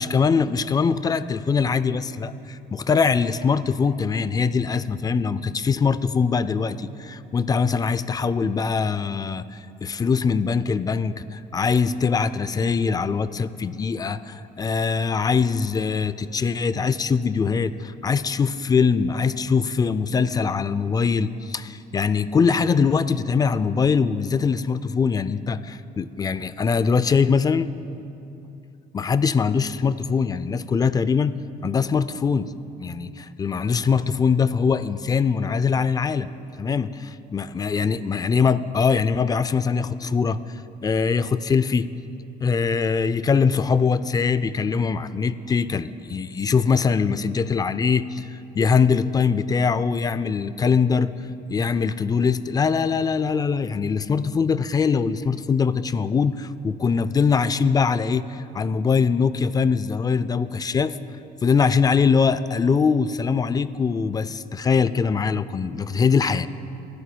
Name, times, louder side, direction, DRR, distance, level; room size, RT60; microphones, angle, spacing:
voice 1, 0.0-27.7 28.9-31.4 31.6-32.5 32.8-36.3 36.6-36.9 37.3-40.4 40.8-41.9 42.4-51.1 51.5-61.0 61.4-66.5, left 5 dB, 20° left, 15 dB, 0.3 m, -22 dB
26.5 x 11.5 x 2.3 m, 2.8 s
cardioid pair, 110°, 17 cm